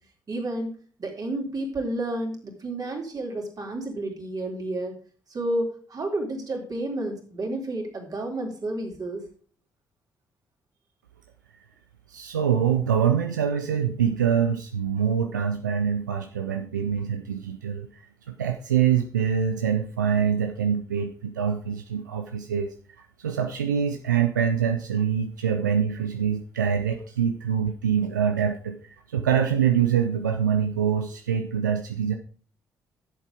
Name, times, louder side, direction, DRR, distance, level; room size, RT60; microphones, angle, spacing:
voice 1, 0.3-0.7 1.0-5.0 5.3-9.2, right 1 dB, 40° right, 1 dB, 3.5 m, -31 dB
voice 2, 12.1-32.1, right 8 dB, 85° right, 6 dB, 0.5 m, -25 dB
10.5 x 7.7 x 4.9 m, 0.42 s
figure-of-eight pair, 40°, 10 cm